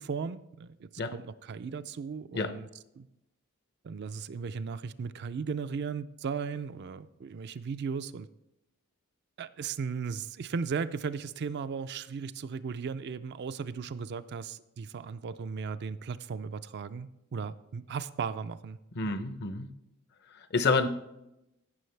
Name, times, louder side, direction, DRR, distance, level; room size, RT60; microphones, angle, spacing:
voice 1, 0.0-2.7 3.0-3.1 3.8-8.3 9.4-18.8 19.0-19.1, right 5 dB, 50° right, 12 dB, 0.4 m, -36 dB
voice 2, 18.9-19.7 20.3-20.9, left 4 dB, 50° left, 11 dB, 0.7 m, -29 dB
16.0 x 6.2 x 3.3 m, 0.88 s
head